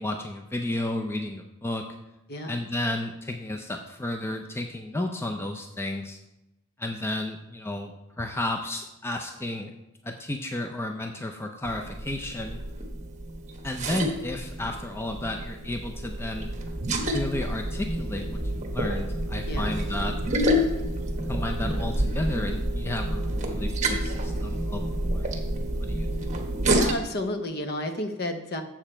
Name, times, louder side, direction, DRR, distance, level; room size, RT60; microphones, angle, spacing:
voice 1, 0.0-1.9 2.5-6.2 6.8-9.7 10.0-12.6 13.6-16.5 17.1-20.2 20.7-20.9 21.3-25.4 25.8-26.1, left 1 dB, 10° left, 3 dB, 0.5 m, -32 dB
voice 2, 2.3-2.6 19.5-19.8 26.6-28.6, left 1 dB, 50° left, 6 dB, 0.9 m, -31 dB
sound 1, 11.7-26.9, right 1 dB, 35° right, 1.1 m, -29 dB
7.2 x 7.1 x 4.4 m, 0.93 s
head